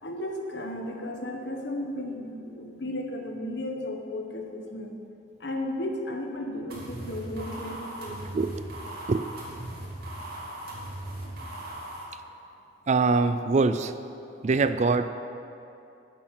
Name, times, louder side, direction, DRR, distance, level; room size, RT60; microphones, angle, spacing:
voice 1, 0.0-5.0 5.4-8.5 11.2-11.4, left 1 dB, 65° left, 2 dB, 1.4 m, -34 dB
sound 1, 6.7-12.0, right 1 dB, 55° right, 2.8 m, -38 dB
voice 2, 8.1-8.6 9.1-9.2 12.9-13.9 14.4-15.1, right 4 dB, 40° right, 11 dB, 0.4 m, -24 dB
10.5 x 10.5 x 6.0 m, 2.7 s
head